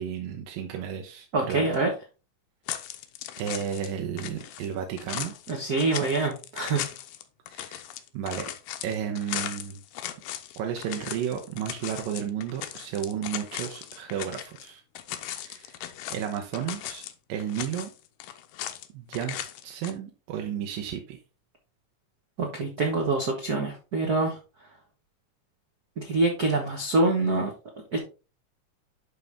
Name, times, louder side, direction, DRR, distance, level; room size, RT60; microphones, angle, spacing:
voice 1, 0.0-1.7 3.4-5.3 7.5-7.8 8.1-8.5 8.8-9.8 10.6-14.8 15.2-15.7 16.1-17.0 17.3-17.9 18.9-19.4 19.6-21.2, right 9 dB, 90° right, 3 dB, 2.7 m, -33 dB
voice 2, 1.3-1.9 5.5-6.8 22.4-24.4 26.0-27.5 27.9-28.0, right 3 dB, 70° right, 0 dB, 0.9 m, -25 dB
sound 1, 2.7-3.9 4.2-14.7 15.0-17.1 17.4-18.9 19.1-19.9, left 12 dB, 85° left, 2.4 m, -38 dB
11.5 x 3.9 x 3.4 m, 0.32 s
omnidirectional pair, 3.9 m